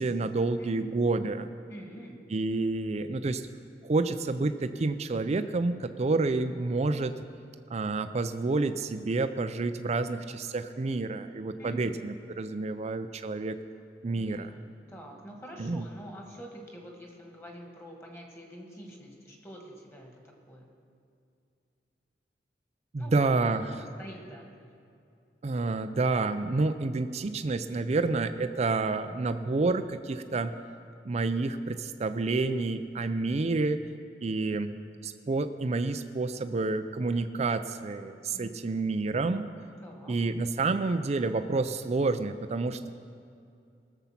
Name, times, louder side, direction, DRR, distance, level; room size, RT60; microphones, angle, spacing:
voice 1, 0.0-1.5 2.3-3.4 3.8-7.2 7.7-13.6 14.0-14.5 15.6-15.8 22.9-23.7 25.4-30.5 31.0-33.8 34.2-34.7 35.0-39.4 40.1-42.9, right 3 dB, 35° right, 9 dB, 0.4 m, -29 dB
voice 2, 0.6-0.9 1.7-2.2 11.6-12.1 14.1-20.7 23.0-23.2 23.4-24.5 38.3-39.0 39.8-40.2, right 1 dB, 15° left, 1 dB, 1.8 m, -47 dB
19.0 x 7.1 x 5.8 m, 2.4 s
head